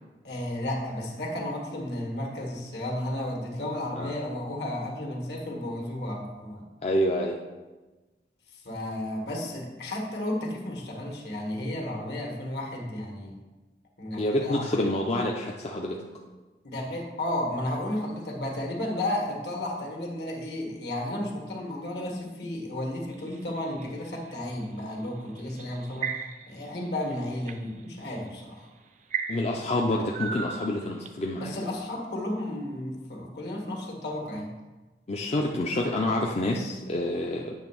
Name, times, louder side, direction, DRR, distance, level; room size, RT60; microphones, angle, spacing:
voice 1, 0.2-6.6 8.6-13.3 14.0-15.0 16.6-26.1 26.5-28.7 31.4-34.5, left 1 dB, 70° left, -1 dB, 1.7 m, -33 dB
voice 2, 6.8-7.4 14.2-16.0 29.3-31.5 35.1-37.5, left 1 dB, 35° left, -1 dB, 0.5 m, -27 dB
sound 1, 23.1-24.4 25.4-26.6 27.1-27.6 28.3-28.4 29.1-31.3, right 7 dB, 45° right, 0.5 m, -35 dB
8.8 x 3.3 x 6.0 m, 1.2 s
head